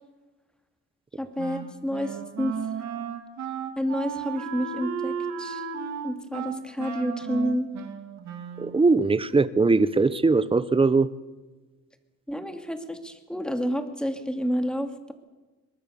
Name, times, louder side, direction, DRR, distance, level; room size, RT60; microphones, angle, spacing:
voice 1, 1.2-2.6 3.8-5.6 6.0-7.7 12.3-15.1, equal, 5° left, 6 dB, 2.6 m, -29 dB
Wind instrument woodwind instrument, 1.4-8.9, right 7 dB, 65° right, 3.3 m, -34 dB
voice 2, 8.6-11.1, right 3 dB, 20° right, 15 dB, 1.0 m, -21 dB
23.5 x 21.0 x 7.1 m, 1.2 s
cardioid pair, 115°, 30 cm